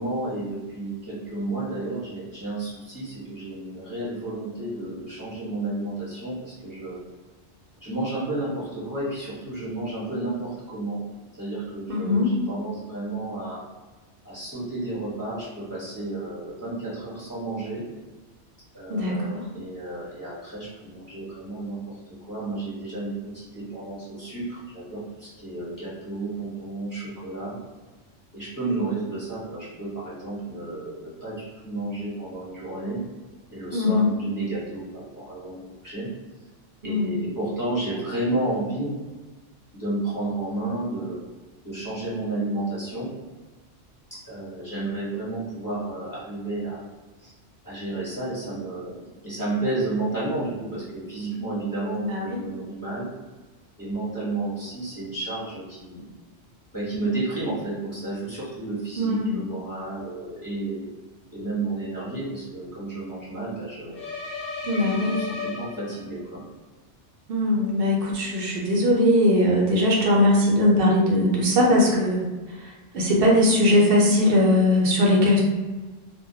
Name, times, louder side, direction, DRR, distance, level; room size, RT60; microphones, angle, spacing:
voice 1, 0.0-7.0 7.8-11.0 11.3-13.6 14.2-17.8 18.7-22.0 22.3-27.6 28.3-33.0 33.5-36.1 36.8-38.9 39.8-41.2 41.6-43.1 44.2-46.8 47.2-47.3 47.6-49.0 49.2-53.1 53.8-56.0 56.7-60.9 61.3-64.0 64.7-66.4, right 2 dB, 20° left, -10 dB, 0.7 m, -31 dB
voice 2, 11.9-12.3 18.9-19.4 33.7-34.1 36.8-37.1 52.0-52.4 59.0-59.4 64.6-65.2 67.3-72.2 72.9-75.4, left 1 dB, 60° right, -2 dB, 0.7 m, -20 dB
sound 1, 63.9-66.3, left 4 dB, 55° left, 0.8 m, -34 dB
2.2 x 2.1 x 2.6 m, 1.2 s
omnidirectional pair, 1.3 m